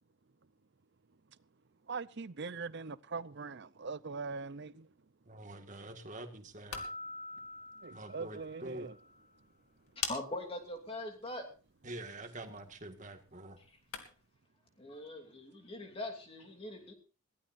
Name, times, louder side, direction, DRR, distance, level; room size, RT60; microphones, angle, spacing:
voice 1, 1.9-4.8 7.8-8.9, right 4 dB, 50° right, 0.6 m, -41 dB
voice 2, 5.3-6.9 7.9-8.9 11.8-13.6, right 1 dB, 35° right, 1.8 m, -46 dB
sound 1, 6.4-14.4, left 7 dB, 85° left, 2.4 m, -48 dB
sound 2, 6.7-9.3, left 1 dB, 45° left, 6.4 m, -47 dB
voice 3, 10.1-11.5 14.8-16.9, left 1 dB, 25° left, 2.8 m, -42 dB
22.0 x 16.5 x 2.6 m
head